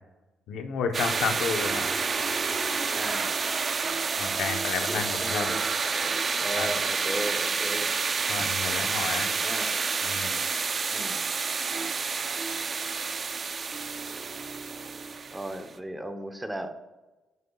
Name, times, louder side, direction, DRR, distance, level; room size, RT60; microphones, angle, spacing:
voice 1, 0.5-1.9 4.2-5.5 6.5-6.7 8.3-9.3 10.0-10.4, left 6 dB, 80° left, 6 dB, 1.0 m, -31 dB
sound 1, 0.9-15.7, right 5 dB, 40° right, 0.6 m, -29 dB
voice 2, 2.9-3.4 4.8-5.6 6.4-7.9 8.4-8.5 9.4-9.7 10.9-11.2 15.3-16.7, right 1 dB, 10° right, 7 dB, 1.0 m, -36 dB
11.5 x 9.4 x 2.4 m, 1.1 s
cardioid pair, 90°, 0 cm